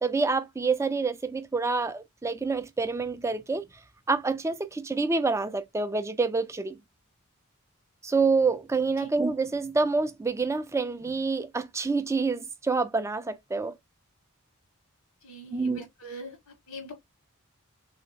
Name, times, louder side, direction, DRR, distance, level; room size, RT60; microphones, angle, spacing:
voice 1, 0.0-3.6 4.1-6.8 8.0-13.7 15.5-15.8, right 4 dB, 15° right, 0.3 m, -27 dB
voice 2, 15.2-16.4 16.7-16.9, right 1 dB, 90° left, 1.3 m, -42 dB
3.3 x 2.7 x 2.7 m
head